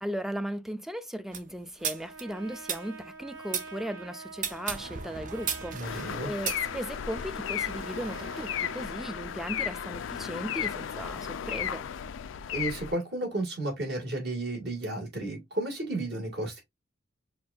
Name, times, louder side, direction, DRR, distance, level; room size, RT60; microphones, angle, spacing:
voice 1, 0.0-11.8, equal, ahead, 0.4 m, -37 dB
sound 1, 1.3-3.7 4.3-7.2, right 7 dB, 40° right, 0.6 m, -35 dB
Trumpet, 1.8-9.4, right 4 dB, 80° right, 0.9 m, -46 dB
voice 2, 5.7-6.3 12.5-16.6, right 2 dB, 60° right, 2.0 m, -33 dB
sound 2, 5.8-12.9, left 9 dB, 80° left, 0.4 m, -34 dB
6.2 x 2.5 x 2.4 m
head